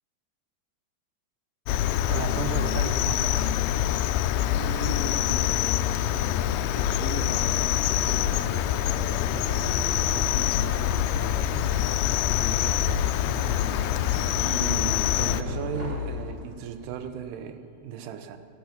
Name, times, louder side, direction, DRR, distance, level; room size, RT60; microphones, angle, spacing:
Cricket, 1.7-15.4, left 12 dB, 85° left, 2.4 m, -25 dB
voice 1, 2.1-3.5 14.3-18.4, right 8 dB, 90° right, 9 dB, 2.9 m, -35 dB
sound 1, 3.0-8.8 9.2-16.2 16.6-17.2, left 2 dB, 65° right, 4.8 m, -38 dB
voice 2, 4.5-5.6 5.9-6.4 6.6-9.1 9.5-11.7 12.0-13.0, left 2 dB, 65° left, -3 dB, 0.9 m, -40 dB
sound 2, 5.8-16.7, right 1 dB, 25° right, 1.5 m, -41 dB
17.0 x 11.5 x 5.9 m, 2.7 s
omnidirectional pair, 4.6 m